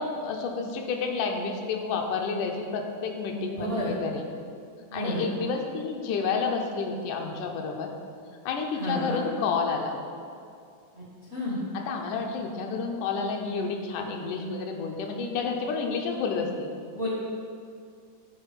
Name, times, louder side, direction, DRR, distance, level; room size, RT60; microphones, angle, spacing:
voice 1, 0.0-4.2 4.9-7.9 8.5-10.0 11.7-16.7, left 5 dB, 85° left, 2 dB, 2.2 m, -30 dB
voice 2, 3.5-4.0 4.9-5.3 8.8-9.2 11.0-11.1 11.3-11.6 16.9-17.1, equal, 65° right, -6 dB, 0.6 m, -31 dB
9.8 x 4.4 x 5.7 m, 2.4 s
omnidirectional pair, 3.5 m